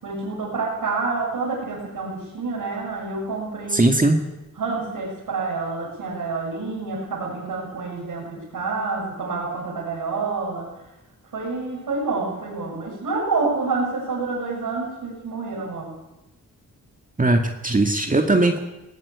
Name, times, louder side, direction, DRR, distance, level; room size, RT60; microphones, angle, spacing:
voice 1, 0.0-3.9 4.6-10.7 11.3-15.9, right 4 dB, 80° right, -5 dB, 7.0 m, -28 dB
voice 2, 3.7-4.2 17.2-18.6, right 2 dB, 25° right, 4 dB, 2.1 m, -19 dB
20.0 x 17.0 x 8.3 m, 0.98 s
cardioid pair, 70°, 34 cm